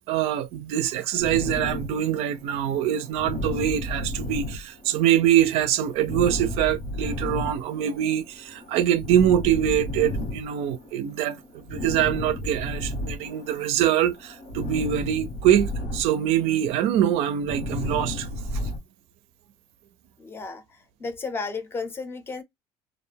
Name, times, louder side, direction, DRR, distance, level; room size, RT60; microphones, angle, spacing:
voice 1, 0.1-18.3, right 11 dB, 70° right, 0.4 m, -24 dB
sound 1, 1.2-13.8 14.1-18.8, left 1 dB, 80° left, 1.3 m, -33 dB
voice 2, 20.2-20.6 21.0-22.4, left 4 dB, 20° left, 0.6 m, -33 dB
2.5 x 2.1 x 3.2 m
cardioid pair, 130°, 11 cm